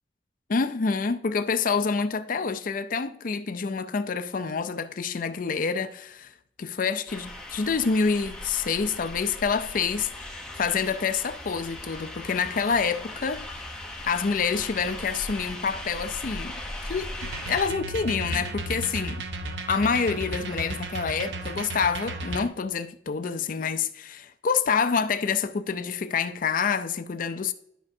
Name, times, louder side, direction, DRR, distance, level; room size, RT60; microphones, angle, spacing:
voice 1, 0.5-6.3 6.6-13.6 14.0-16.6 16.9-19.2 19.7-27.5, left 5 dB, 50° left, 0.5 m, -27 dB
sound 1, 7.1-17.7, left 1 dB, 5° left, 0.9 m, -38 dB
sound 2, 17.2-22.5, right 2 dB, 85° right, 0.7 m, -34 dB
12.0 x 5.2 x 2.7 m
head